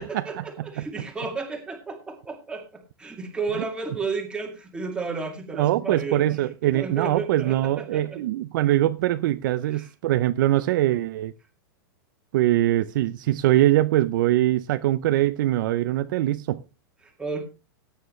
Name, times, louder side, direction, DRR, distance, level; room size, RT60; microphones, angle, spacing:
voice 1, 0.0-8.2 9.7-9.9 17.0-17.4, right 4 dB, 5° right, 2.2 m, -33 dB
voice 2, 5.6-11.3 12.3-16.6, right 14 dB, 55° right, 0.5 m, -22 dB
16.0 x 9.3 x 3.1 m
supercardioid pair, 160°, 13 cm